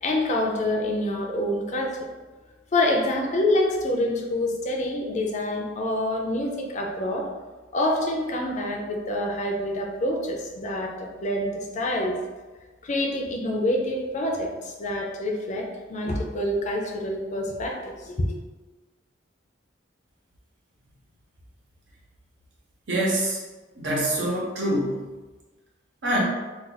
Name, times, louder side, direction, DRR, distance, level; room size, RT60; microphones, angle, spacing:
voice 1, 0.0-2.0 2.7-7.3 7.7-12.2 12.8-18.4, left 1 dB, 40° left, 1 dB, 0.4 m, -26 dB
voice 2, 22.9-23.4 23.8-25.0 26.0-26.2, right 1 dB, 65° right, -4 dB, 0.9 m, -25 dB
2.4 x 2.3 x 3.9 m, 1.2 s
head